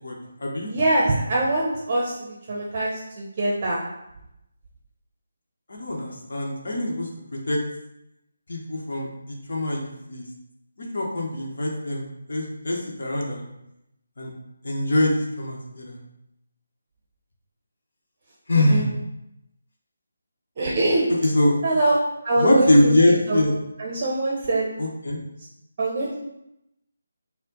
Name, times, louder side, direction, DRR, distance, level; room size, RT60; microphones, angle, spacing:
voice 1, 0.6-3.8 18.7-18.9 20.6-21.1 21.6-22.0 22.2-22.9 23.3-23.4 23.8-24.7 25.8-26.2, right 2 dB, 40° right, -3 dB, 0.7 m, -23 dB
voice 2, 5.7-7.1 7.5-7.6 8.5-9.1 9.5-10.2 10.9-13.5 14.2-14.3 14.6-16.0 18.5-18.8 21.2-21.5 22.4-23.5 24.8-25.2, left 1 dB, 65° left, -1 dB, 1.0 m, -22 dB
4.2 x 2.2 x 3.8 m, 0.85 s
figure-of-eight pair, 155°, 0 cm